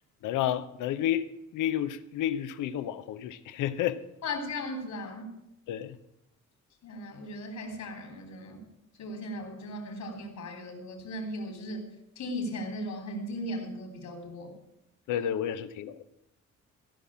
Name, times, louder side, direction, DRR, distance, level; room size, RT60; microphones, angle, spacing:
voice 1, 0.2-1.3 1.5-4.0 5.7-6.0 15.1-16.1, left 11 dB, 90° left, 13 dB, 0.8 m, -30 dB
voice 2, 4.2-5.3 6.8-8.6 9.0-11.9 12.2-14.5, left 1 dB, 70° left, 3 dB, 3.5 m, -37 dB
15.5 x 5.7 x 8.6 m, 0.83 s
cardioid pair, 90°, 30 cm